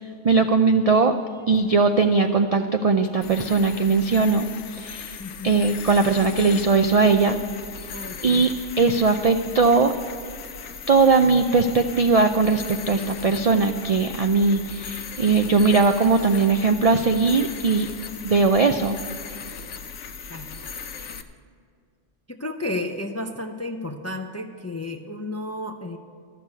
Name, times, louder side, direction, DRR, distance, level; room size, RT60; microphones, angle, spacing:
voice 1, 0.2-1.2 1.5-5.2 5.4-7.4 8.2-9.9 10.9-17.9 18.2-19.0, right 4 dB, 60° right, 7 dB, 0.3 m, -19 dB
sound 1, 3.2-21.2, left 5 dB, 75° left, 1.0 m, -38 dB
voice 2, 5.2-5.6 7.9-8.5 20.3-20.4 22.3-26.0, left 2 dB, 25° left, 5 dB, 0.3 m, -32 dB
13.0 x 6.8 x 8.3 m, 2.2 s
omnidirectional pair, 1.2 m